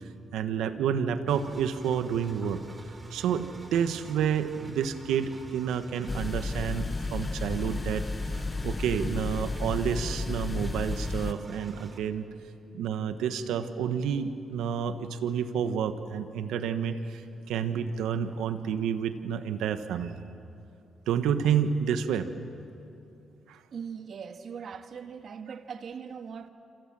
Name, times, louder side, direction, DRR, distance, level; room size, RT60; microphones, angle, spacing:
voice 1, 0.3-2.6 3.1-8.0 8.3-12.3 12.7-17.2 17.5-20.2 21.1-22.3 23.5-23.6, right 8 dB, 85° right, 1.4 m, -29 dB
Engine, 1.3-12.0, right 2 dB, 30° right, 3.3 m, -48 dB
sound 1, 6.1-11.3, left 3 dB, 35° left, 0.9 m, -32 dB
voice 2, 23.7-26.5, right 6 dB, 65° right, 1.7 m, -40 dB
27.5 x 27.0 x 7.7 m
supercardioid pair, 60°, 0 cm